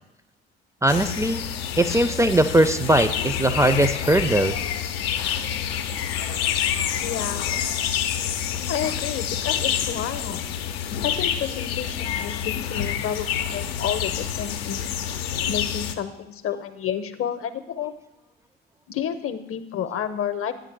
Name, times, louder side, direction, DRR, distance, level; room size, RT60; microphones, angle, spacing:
voice 1, 0.8-1.4 1.8-4.6, right 1 dB, 10° right, 11 dB, 0.5 m, -20 dB
sound 1, 0.9-16.0, left 9 dB, 75° left, 0.6 m, -27 dB
voice 2, 7.0-7.5 8.7-10.5 11.0-14.9 15.5-17.9 18.9-20.5, left 9 dB, 45° left, 11 dB, 0.8 m, -30 dB
9.0 x 3.9 x 6.6 m, 0.91 s
figure-of-eight pair, 45°, 30 cm